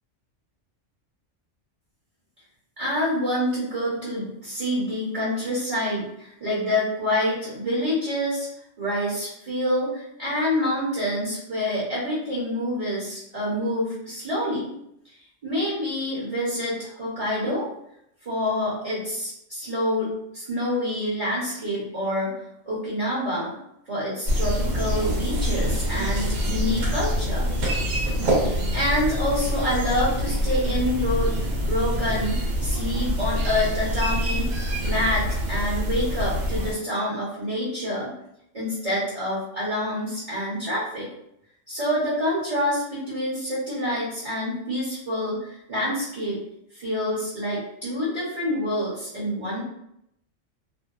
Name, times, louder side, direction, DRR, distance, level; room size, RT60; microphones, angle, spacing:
voice 1, 2.8-8.5 8.8-14.7 15.4-17.7 18.2-22.3 22.6-23.6 23.9-27.5 28.3-38.1 38.5-41.1 41.7-46.4 46.7-49.6, left 1 dB, 35° right, -7 dB, 0.7 m, -27 dB
sound 1, 24.3-36.7, equal, 85° right, 1.0 m, -25 dB
2.7 x 2.1 x 2.3 m, 0.78 s
omnidirectional pair, 1.3 m